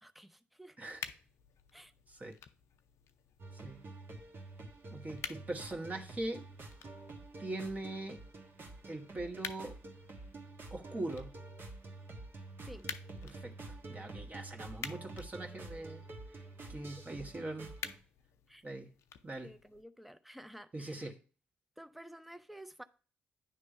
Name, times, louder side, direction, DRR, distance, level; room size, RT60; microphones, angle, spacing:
voice 1, 0.0-0.8 1.7-1.9 12.7-12.9 17.1-17.2 17.4-17.6 18.5-18.6 19.4-21.1 21.8-22.8, equal, ahead, 11 dB, 0.7 m, -52 dB
sound 1, 0.9-19.8, left 8 dB, 70° left, 0.5 m, -51 dB
sound 2, 3.4-18.0, right 2 dB, 50° right, 1.4 m, -49 dB
voice 2, 4.9-6.4 7.4-8.2 8.9-9.8 10.7-11.3 13.2-13.5 13.9-16.0 16.7-17.7 18.6-18.9 19.2-19.5 20.7-21.2, right 2 dB, 30° right, 2 dB, 1.5 m, -41 dB
9.1 x 3.2 x 5.4 m, 0.38 s
hypercardioid pair, 45°, 5 cm